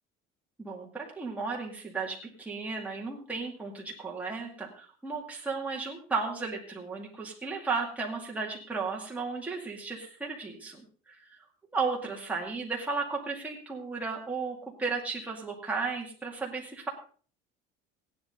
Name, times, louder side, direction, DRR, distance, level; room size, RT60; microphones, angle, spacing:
voice 1, 0.6-11.2 11.7-16.9, right 4 dB, 5° right, -2 dB, 2.2 m, -34 dB
15.5 x 10.5 x 3.9 m, 0.41 s
cardioid pair, 175°, 21 cm